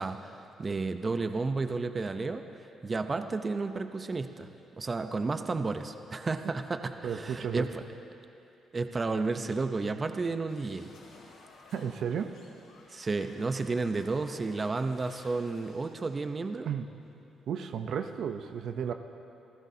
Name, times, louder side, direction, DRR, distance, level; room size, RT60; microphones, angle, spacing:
voice 1, 0.0-4.5 4.8-7.8 8.7-10.9 12.9-16.7, right 3 dB, 30° right, 7 dB, 0.7 m, -32 dB
voice 2, 7.0-7.7 11.7-12.3 16.7-16.9 17.5-18.9, right 7 dB, 70° right, 7 dB, 0.7 m, -33 dB
sound 1, 10.5-16.2, left 3 dB, 85° left, 4.2 m, -56 dB
28.0 x 15.0 x 2.8 m, 2.7 s
cardioid pair, 90°, 0 cm